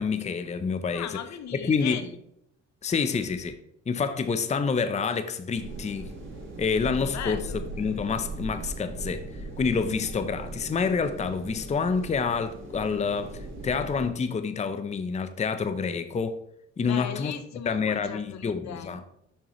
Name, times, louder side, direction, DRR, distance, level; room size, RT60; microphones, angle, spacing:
voice 1, 0.0-1.1 1.6-2.0 2.8-3.6 3.9-6.1 6.6-7.4 7.8-9.3 9.6-16.4 16.8-17.3 17.7-19.0, left 5 dB, 25° left, 0.5 m, -28 dB
voice 2, 0.9-2.2 7.0-7.7 16.8-19.1, left 8 dB, 65° left, 0.7 m, -37 dB
sound 1, 5.6-14.1, right 2 dB, 40° right, 2.5 m, -39 dB
6.6 x 6.0 x 3.0 m
cardioid pair, 90°, 30 cm